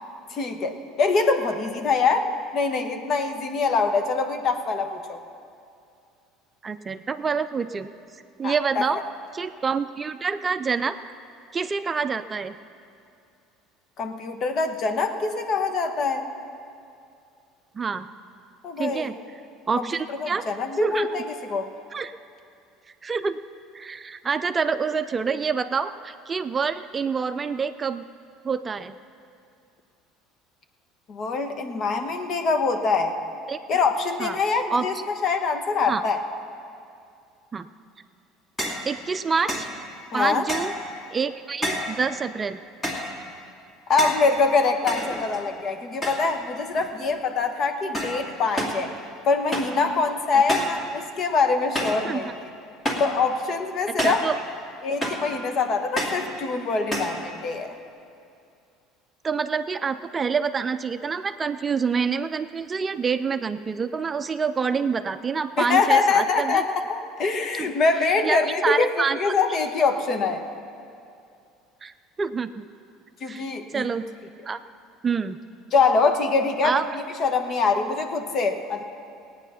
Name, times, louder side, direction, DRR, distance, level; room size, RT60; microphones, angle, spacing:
voice 1, 0.3-5.2 8.4-8.8 14.0-16.3 18.6-19.1 19.9-21.7 31.1-33.1 33.7-35.0 35.2-36.2 40.1-40.4 43.9-48.9 49.2-52.3 53.0-54.2 54.8-57.7 65.6-68.9 69.2-70.4 73.2-73.9 75.7-78.8, left 4 dB, 50° left, 6 dB, 1.3 m, -24 dB
voice 2, 6.6-7.9 8.4-9.0 9.3-11.0 11.5-12.6 17.7-18.1 18.8-19.2 19.7-20.5 20.8-21.1 21.9-22.1 23.0-23.4 23.7-28.0 28.4-29.0 33.5-33.6 34.2-34.4 34.7-34.9 35.9-36.0 37.5-37.7 38.9-39.7 40.1-40.7 41.1-42.6 50.3-50.4 52.0-52.2 53.9-54.3 59.2-66.6 67.6-67.7 68.2-69.3 71.8-72.7 73.2-73.4 73.7-74.0 74.5-74.6 75.0-75.4 76.6-76.9, right 5 dB, 25° right, 10 dB, 0.4 m, -27 dB
sound 1, 38.6-38.9 39.5-39.8 40.5-40.8 41.6-42.0 42.8-43.2 44.0-44.3 44.9-45.5 46.0-46.4 46.7-47.2 47.9-48.2 48.6-48.8 49.5-49.8 50.5-50.8 51.7-52.1 52.8-53.2 54.0-54.3 55.0-55.3 56.0-56.3 56.9-57.2, equal, 20° left, 2.4 m, -29 dB
17.5 x 9.1 x 5.7 m, 2.5 s
supercardioid pair, 100°, 0 cm